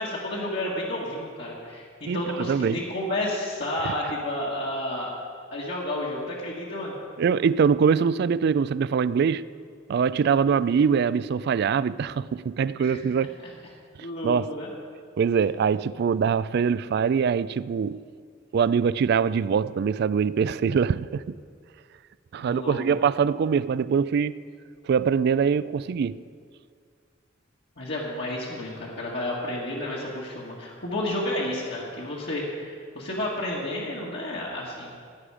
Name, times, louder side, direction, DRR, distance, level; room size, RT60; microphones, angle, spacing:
voice 1, 0.0-5.1 5.5-7.0 12.8-13.0 14.0-14.7 22.4-22.8 27.8-34.9, left 1 dB, 60° left, 1.9 m, -31 dB
voice 2, 2.1-2.8 3.9-4.0 7.2-9.4 9.9-13.3 14.2-14.5 15.2-18.0 18.5-21.4 22.3-24.5 24.9-26.2, right 6 dB, 55° right, 0.3 m, -23 dB
16.5 x 10.5 x 4.9 m
head